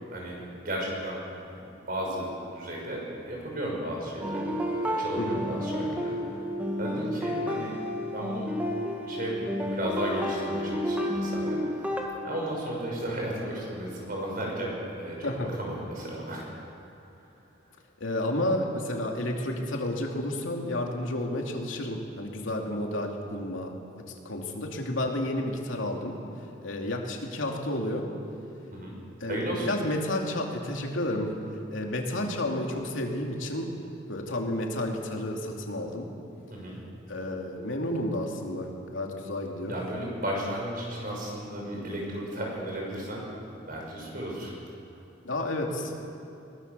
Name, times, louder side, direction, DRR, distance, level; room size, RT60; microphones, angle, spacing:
voice 1, 0.1-1.2 1.5-6.5 6.8-7.7 8.1-8.5 9.1-11.6 12.2-14.7 15.0-16.4 28.7-29.0 29.3-29.7 36.5-36.8 39.7-43.3 43.6-44.5, right 1 dB, 50° right, -2 dB, 6.1 m, -34 dB
sound 1, 4.2-12.0, equal, 10° right, 2.1 m, -31 dB
voice 2, 18.0-23.7 24.2-26.2 26.6-28.0 29.2-31.3 31.7-33.7 34.1-36.1 37.1-39.7 45.2-46.0, left 1 dB, 85° left, 1 dB, 2.8 m, -31 dB
21.5 x 18.0 x 6.9 m, 2.7 s
head